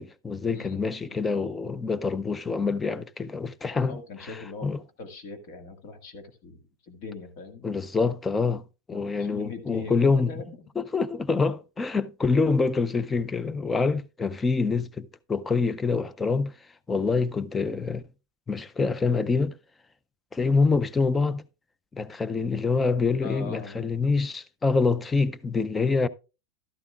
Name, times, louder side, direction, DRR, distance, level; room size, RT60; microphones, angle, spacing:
voice 1, 0.0-4.0 4.6-4.8 7.6-8.6 8.9-10.3 10.8-16.5 16.9-18.0 18.5-19.5 20.3-21.4 21.9-26.1, left 4 dB, 10° left, 0.4 m, -26 dB
voice 2, 3.8-4.7 5.0-7.7 8.9-10.7 23.2-23.9, left 4 dB, 50° left, 1.8 m, -41 dB
12.0 x 11.0 x 2.4 m
supercardioid pair, 150°, 0 cm